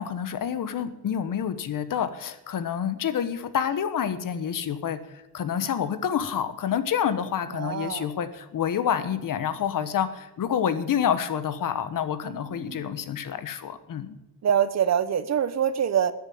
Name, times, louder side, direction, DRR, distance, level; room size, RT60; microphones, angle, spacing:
voice 1, 0.0-14.2, left 8 dB, 65° left, 12 dB, 1.3 m, -28 dB
voice 2, 7.5-8.1 12.2-12.9 14.4-16.1, right 8 dB, 50° right, 14 dB, 0.9 m, -25 dB
13.5 x 7.9 x 8.6 m, 0.91 s
cardioid pair, 125°, 35 cm